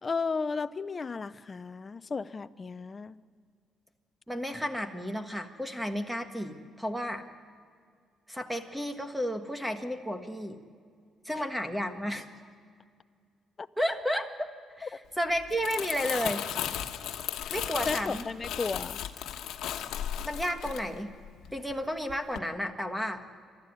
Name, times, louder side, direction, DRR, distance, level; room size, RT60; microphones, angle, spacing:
voice 1, 0.0-3.2 13.6-13.7 14.8-14.9 17.4-17.5 17.9-19.0, left 4 dB, 25° left, 13 dB, 0.6 m, -34 dB
voice 2, 4.3-7.2 8.3-10.6 11.2-12.3 13.8-14.5 14.8-16.5 17.5-18.3 20.2-21.1 21.5-23.2, equal, 5° right, 6 dB, 1.5 m, -32 dB
Crumpling crinkling, 15.3-21.7 22.1-22.4, left 10 dB, 85° left, 1.2 m, -36 dB
28.5 x 13.0 x 9.7 m, 2.1 s
cardioid pair, 135°, 0 cm